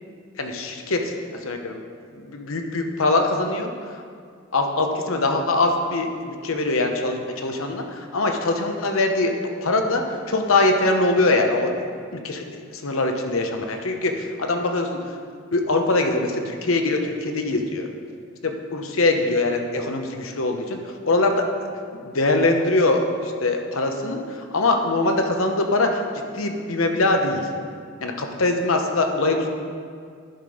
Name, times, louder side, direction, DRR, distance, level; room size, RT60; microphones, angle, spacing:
voice 1, 0.4-1.1 1.4-1.8 2.1-3.7 4.5-9.3 9.6-11.7 12.1-15.2 15.5-17.9 18.4-21.4 21.9-27.4 28.0-29.5, left 2 dB, 70° left, 4 dB, 0.9 m, -23 dB
10.5 x 6.1 x 5.0 m, 2.2 s
head